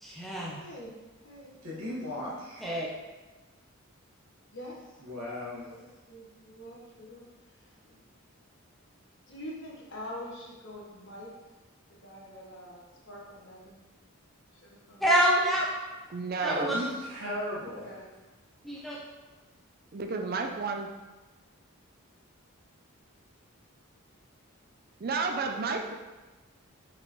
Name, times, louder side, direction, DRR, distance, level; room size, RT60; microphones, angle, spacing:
voice 1, 0.0-0.6 2.6-2.9 15.0-15.7 16.4-16.7 18.6-19.0, equal, ahead, -5 dB, 0.6 m, -26 dB
voice 2, 0.6-1.0 1.2-1.9 4.5-4.8 5.6-5.8 6.1-7.2 7.9-8.0 9.3-11.3 12.0-13.8 14.5-15.0 17.6-18.1, equal, 55° left, -4 dB, 1.5 m, -45 dB
voice 3, 1.6-2.7 5.0-5.7 16.5-18.0, left 1 dB, 75° right, -6 dB, 1.6 m, -36 dB
voice 4, 16.1-16.8 19.9-20.9 25.0-25.9, right 4 dB, 45° right, 4 dB, 0.4 m, -31 dB
5.8 x 5.2 x 3.1 m, 1.2 s
head